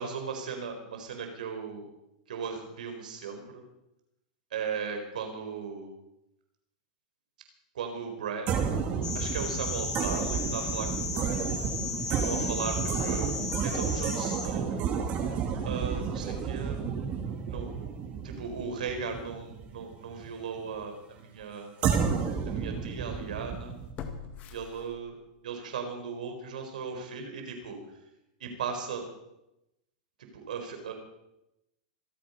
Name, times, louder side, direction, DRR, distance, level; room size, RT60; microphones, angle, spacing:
voice 1, 0.0-1.8 2.3-3.6 4.5-5.9 7.7-8.6 9.1-11.5 12.2-13.3 13.6-14.8 15.6-16.8 17.5-17.7 18.2-21.7 22.5-23.7 24.5-25.1 25.4-27.8 28.4-29.1 30.3-30.9, right 6 dB, 85° right, 5 dB, 4.5 m, -37 dB
sound 1, 8.5-20.2 21.8-23.9, right 6 dB, 35° right, 2.8 m, -31 dB
sound 2, 9.0-14.5, left 4 dB, 20° left, 3.2 m, -35 dB
sound 3, 20.7-20.8 21.4-21.5 24.0-25.4 25.8-25.9, left 7 dB, 35° left, 1.9 m, -43 dB
26.5 x 8.9 x 5.4 m, 0.89 s
supercardioid pair, 145°, 4 cm